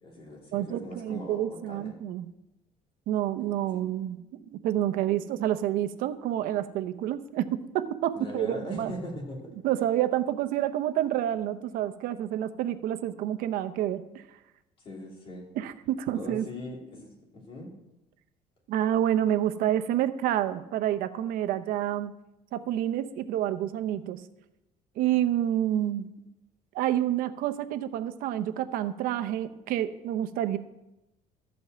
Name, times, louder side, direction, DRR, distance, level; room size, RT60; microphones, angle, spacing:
voice 1, 0.0-1.9 8.1-9.4 14.8-15.5 16.1-17.1 17.3-17.7, left 1 dB, 40° left, -2 dB, 2.9 m, -40 dB
voice 2, 0.5-2.3 3.1-8.9 9.6-14.2 15.6-16.5 18.7-22.2 22.5-24.2 25.0-26.1 26.7-30.6, right 11 dB, 75° right, 10 dB, 0.8 m, -28 dB
13.5 x 5.3 x 7.7 m, 0.92 s
cardioid pair, 165°, 15 cm